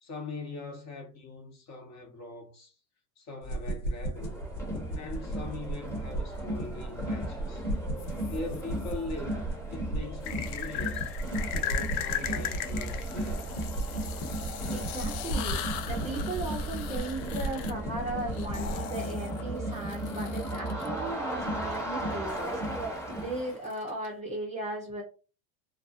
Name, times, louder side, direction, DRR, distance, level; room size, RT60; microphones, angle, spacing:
voice 1, 0.0-2.7 3.2-4.4 4.9-7.7 8.3-9.4 9.7-11.1 11.5-13.5, left 3 dB, 30° left, 0.9 m, -41 dB
sound 1, 3.4-18.8, right 2 dB, 75° left, 1.1 m, -36 dB
Crowd, 4.2-23.6, right 1 dB, 5° left, 1.1 m, -36 dB
sound 2, 8.0-8.9 10.2-20.9 22.3-24.1, left 10 dB, 60° left, 0.6 m, -39 dB
voice 2, 14.7-15.6 15.9-22.8 23.1-25.0, right 2 dB, 15° right, 0.4 m, -37 dB
2.4 x 2.2 x 2.6 m
hypercardioid pair, 85°, 50 cm